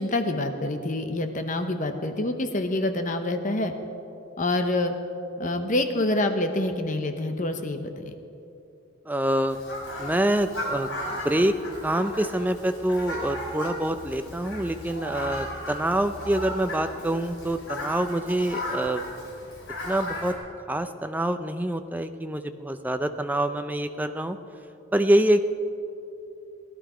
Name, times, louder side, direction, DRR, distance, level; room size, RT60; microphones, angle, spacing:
voice 1, 0.0-3.7 4.4-4.9 5.4-8.1, left 2 dB, 35° left, 7 dB, 0.8 m, -26 dB
voice 2, 9.1-9.6 10.0-11.5 11.8-19.0 19.8-20.3 20.7-24.4 24.9-25.4, right 1 dB, 10° right, 8 dB, 0.4 m, -26 dB
Fowl, 9.5-20.3, left 1 dB, 65° left, 3.9 m, -36 dB
17.5 x 11.5 x 5.0 m, 2.8 s
head